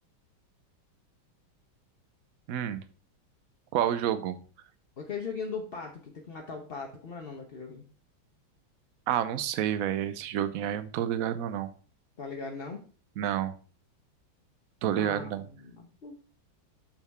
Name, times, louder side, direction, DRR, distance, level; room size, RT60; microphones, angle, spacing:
voice 1, 2.5-2.8 3.7-4.4 9.1-11.7 13.2-13.5 14.8-15.5, right 10 dB, 65° right, 13 dB, 0.8 m, -29 dB
voice 2, 5.0-7.8 9.9-10.0 12.2-12.8 14.9-16.2, left 5 dB, 45° left, 1 dB, 0.8 m, -39 dB
7.1 x 5.9 x 4.7 m, 0.37 s
omnidirectional pair, 2.2 m